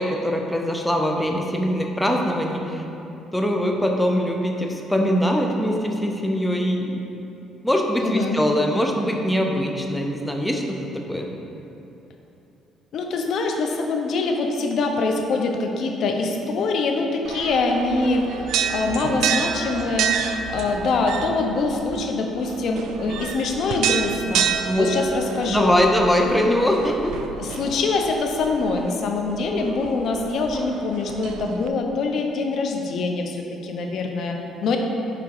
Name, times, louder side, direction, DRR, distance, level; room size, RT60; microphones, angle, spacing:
voice 1, 0.0-2.8 3.3-7.0 7.6-11.3 24.6-24.9 25.5-27.1, equal, 5° left, 2 dB, 0.7 m, -22 dB
voice 2, 8.0-8.4 12.9-25.8 27.4-34.8, left 3 dB, 60° left, 3 dB, 0.8 m, -24 dB
sound 1, 17.3-31.7, right 7 dB, 80° right, 0.4 m, -29 dB
5.9 x 4.9 x 4.8 m, 3.0 s
cardioid pair, 110°, 0 cm